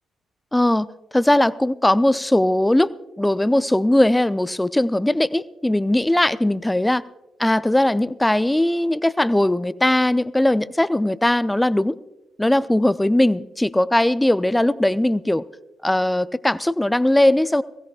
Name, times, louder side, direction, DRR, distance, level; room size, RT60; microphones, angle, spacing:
voice 1, 0.5-0.9 1.1-2.9 3.2-7.0 7.4-11.9 12.4-15.4 15.8-17.6, left 1 dB, 10° left, 16 dB, 0.5 m, -19 dB
21.0 x 16.0 x 2.4 m, 1.0 s
hypercardioid pair, 40°, 0 cm